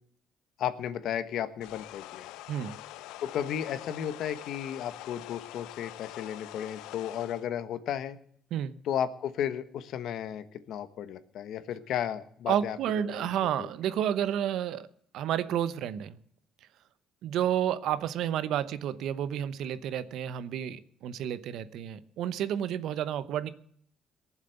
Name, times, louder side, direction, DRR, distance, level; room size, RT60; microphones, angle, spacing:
voice 1, 0.6-2.3 3.2-8.2 8.8-13.3 13.6-13.7, left 9 dB, 70° left, 12 dB, 1.2 m, -34 dB
sound 1, 1.6-7.5, left 16 dB, 85° left, 0.5 m, -45 dB
voice 2, 12.5-14.9 15.1-16.2 17.2-23.5, right 10 dB, 75° right, 14 dB, 0.9 m, -30 dB
18.5 x 7.5 x 7.9 m, 0.64 s
cardioid pair, 85°, 0 cm